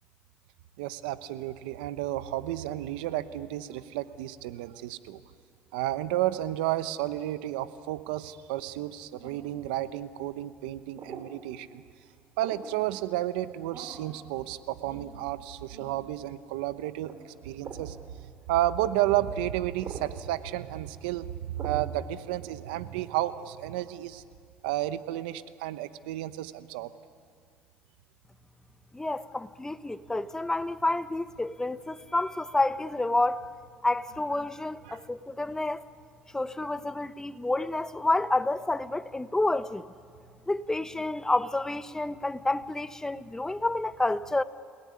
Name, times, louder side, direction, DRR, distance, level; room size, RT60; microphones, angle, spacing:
voice 1, 0.8-5.2 5.7-11.8 12.4-17.1 17.4-18.0 18.2-24.2 24.6-26.9 34.8-35.0, right 14 dB, 90° right, 1.0 m, -32 dB
sound 1, 9.2-9.6 11.0-11.3 12.4-12.7 13.7-14.1 14.9-15.1 15.7-15.9 17.0-17.2 17.6-17.9 19.0-19.2 19.8-20.1 21.6-21.9, right 5 dB, 50° right, 4.3 m, -42 dB
voice 2, 28.9-33.5 33.8-35.8 36.3-39.9 40.5-44.4, left 2 dB, 10° left, 1.1 m, -29 dB
30.0 x 18.0 x 9.7 m
supercardioid pair, 80°, 5 cm